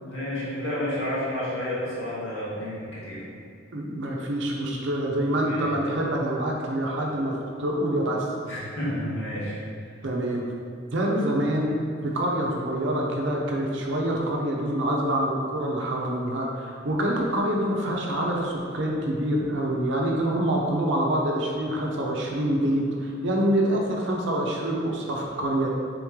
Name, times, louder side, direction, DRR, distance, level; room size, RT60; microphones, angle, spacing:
voice 1, 0.0-3.3 4.5-4.7 5.2-5.7 8.5-9.6 9.9-10.0, left 1 dB, 70° left, -8 dB, 1.3 m, -31 dB
voice 2, 3.7-7.3 7.6-8.3 10.0-10.5 10.9-25.7, right 1 dB, 65° right, -1 dB, 0.6 m, -26 dB
3.7 x 3.0 x 3.6 m, 2.3 s
head